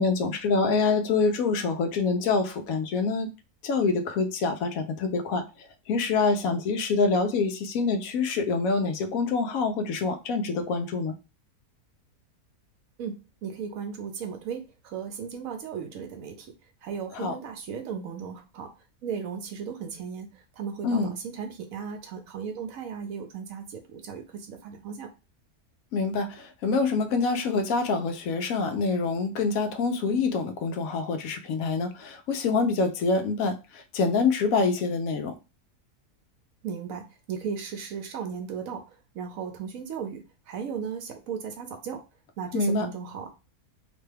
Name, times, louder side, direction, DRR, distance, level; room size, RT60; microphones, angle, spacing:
voice 1, 0.0-3.3 3.6-5.4 5.9-11.1 17.1-17.3 20.8-21.1 25.9-35.3 42.5-42.9, left 4 dB, 75° left, 1.0 m, -26 dB
voice 2, 13.0-16.5 16.8-18.7 19.0-20.3 20.6-25.1 36.6-38.8 39.1-40.2 40.5-42.0 42.4-43.3, right 6 dB, 70° right, 1.0 m, -36 dB
2.9 x 2.2 x 3.2 m
omnidirectional pair, 1.5 m